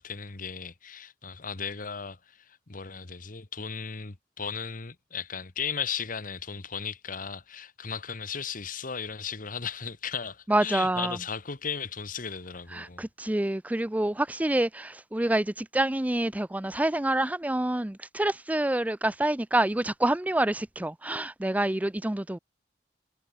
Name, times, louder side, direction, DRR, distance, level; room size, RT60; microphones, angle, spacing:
voice 1, 0.0-13.0, left 6 dB, 50° left, 1.4 m, -36 dB
voice 2, 10.5-11.2 12.7-22.4, right 1 dB, 10° right, 0.5 m, -27 dB
head